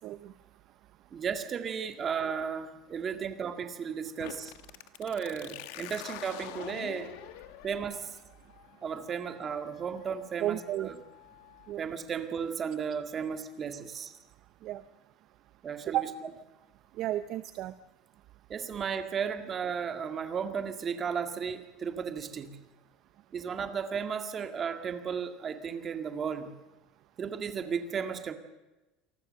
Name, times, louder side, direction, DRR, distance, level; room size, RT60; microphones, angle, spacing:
voice 1, 0.0-0.3 10.4-10.9 11.7-11.8 14.6-14.8 15.9-16.1 16.9-17.8, right 13 dB, 40° right, 13 dB, 0.7 m, -32 dB
voice 2, 1.1-4.5 5.0-7.2 7.6-8.2 8.8-11.0 11.8-14.2 15.6-16.1 18.5-22.6 23.3-26.5 27.2-28.3, right 6 dB, 20° right, 7 dB, 2.0 m, -34 dB
sound 1, 4.2-11.7, left 14 dB, 65° left, 1.6 m, -47 dB
28.5 x 19.5 x 6.6 m, 1.1 s
cardioid pair, 175°, 0 cm